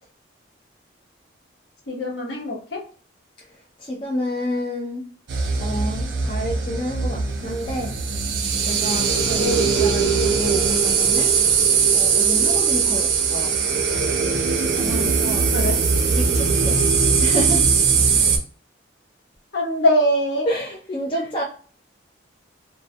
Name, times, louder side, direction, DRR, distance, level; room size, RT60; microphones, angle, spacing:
voice 1, 1.9-2.8 14.7-15.1 15.5-15.8 19.5-20.5, equal, 60° left, 0.8 m, -22 dB
voice 2, 3.4-5.1 5.6-8.0 8.7-11.4 11.9-13.6 15.0-15.5 16.2-16.9 17.2-17.8 20.5-21.4, equal, 25° left, 0.3 m, -29 dB
sound 1, 5.3-18.4, right 5 dB, 65° right, 0.5 m, -20 dB
2.2 x 2.1 x 2.6 m
head